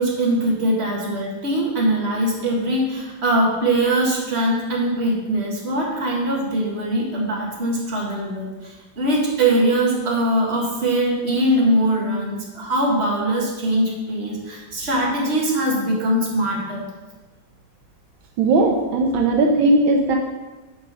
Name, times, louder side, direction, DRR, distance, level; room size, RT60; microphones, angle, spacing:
voice 1, 0.0-16.9, right 1 dB, 30° right, -3 dB, 2.0 m, -22 dB
voice 2, 18.4-20.2, right 2 dB, 80° right, 2 dB, 1.6 m, -17 dB
8.4 x 5.6 x 5.6 m, 1.2 s
omnidirectional pair, 2.2 m